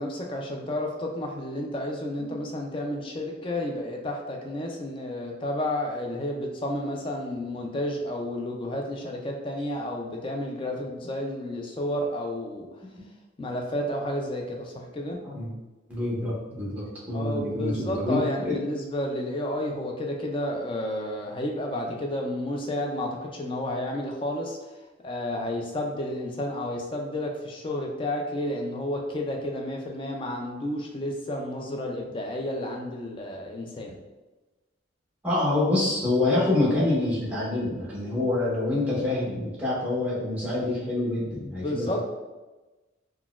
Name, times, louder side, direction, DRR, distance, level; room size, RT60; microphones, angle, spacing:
voice 1, 0.0-12.7 13.4-15.2 17.1-24.6 25.0-34.0 41.3-42.0, left 1 dB, 25° left, 1 dB, 0.4 m, -31 dB
voice 2, 15.9-18.6 35.2-42.0, left 2 dB, 10° right, -7 dB, 0.8 m, -26 dB
3.9 x 2.2 x 2.3 m, 1.2 s
head